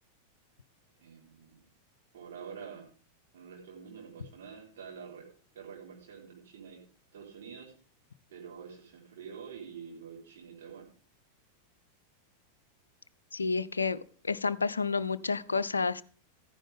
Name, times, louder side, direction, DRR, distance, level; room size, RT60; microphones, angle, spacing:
voice 1, 1.0-1.6 2.1-2.8 3.3-5.2 5.5-6.8 7.1-7.7 8.3-10.9, right 6 dB, 60° right, -2 dB, 4.7 m, -47 dB
voice 2, 13.3-14.0 14.2-16.0, left 4 dB, 75° left, 13 dB, 0.5 m, -30 dB
14.5 x 10.0 x 3.7 m, 0.42 s
figure-of-eight pair, 90°, 0 cm